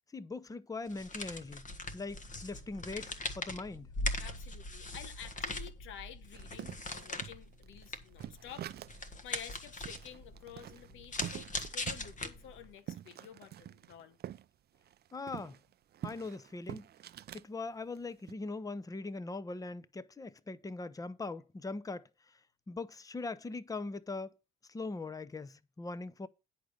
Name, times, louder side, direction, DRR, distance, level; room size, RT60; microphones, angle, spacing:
voice 1, 0.1-1.6 1.9-3.9 15.1-15.6 16.0-16.9 17.3-22.1 22.7-24.3 24.7-26.3, left 3 dB, 15° left, 0.7 m, -41 dB
sound 1, 0.9-12.7, left 2 dB, 40° left, 1.4 m, -41 dB
voice 2, 4.2-8.7 9.2-14.2, left 9 dB, 85° left, 1.0 m, -50 dB
sound 2, 6.3-9.1 9.5-9.6 9.9-14.4 14.7-17.5 17.9-18.3, right 11 dB, 55° right, 0.4 m, -46 dB
10.0 x 5.0 x 6.5 m
cardioid pair, 90°, 20 cm